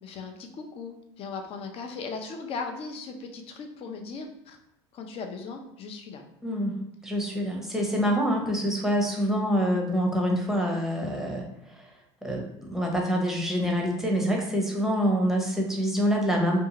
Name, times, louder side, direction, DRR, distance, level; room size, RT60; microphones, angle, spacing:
voice 1, 0.0-4.6 4.9-6.2, left 4 dB, 40° left, 4 dB, 0.5 m, -38 dB
voice 2, 6.4-11.9 12.2-16.6, equal, 5° right, 0 dB, 0.7 m, -26 dB
2.6 x 2.4 x 2.8 m, 0.79 s
hypercardioid pair, 95°, 15 cm